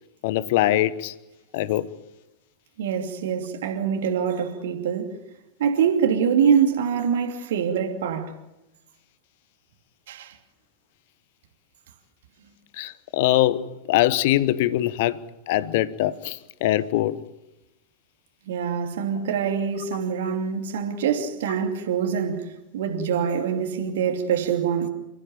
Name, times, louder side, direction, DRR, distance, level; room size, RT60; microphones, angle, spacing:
voice 1, 0.2-1.1 1.5-1.9 12.8-15.2 15.5-17.2, left 14 dB, 50° left, 1.1 m, -22 dB
voice 2, 2.8-5.2 5.6-8.4 10.1-10.4 18.5-24.9, right 7 dB, 60° right, 2.7 m, -24 dB
29.5 x 15.0 x 9.1 m
figure-of-eight pair, 90°, 0 cm